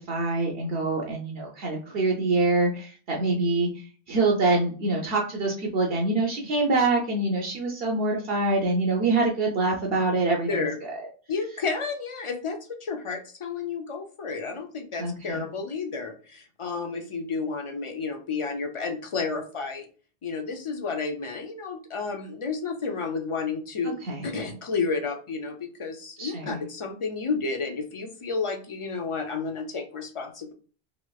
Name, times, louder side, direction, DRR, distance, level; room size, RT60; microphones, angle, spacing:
voice 1, 0.0-3.7 4.1-11.0 15.0-15.4 24.1-24.3 26.2-26.6, right 3 dB, 70° right, -1 dB, 0.8 m, -25 dB
voice 2, 11.3-19.9 20.2-23.9 24.2-30.5, left 4 dB, 55° left, 5 dB, 0.3 m, -31 dB
3.1 x 2.9 x 2.2 m, 0.38 s
omnidirectional pair, 1.1 m